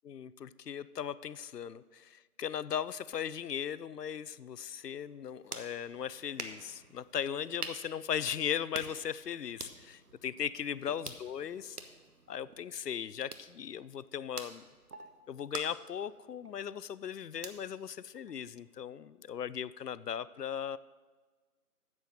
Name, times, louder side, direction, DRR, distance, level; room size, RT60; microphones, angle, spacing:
voice 1, 0.1-11.8 12.3-14.6 15.3-20.8, left 8 dB, 85° left, 17 dB, 0.6 m, -38 dB
sound 1, 5.1-18.8, right 3 dB, 75° right, 1.2 m, -49 dB
9.4 x 7.5 x 6.5 m, 1.4 s
figure-of-eight pair, 160°, 46 cm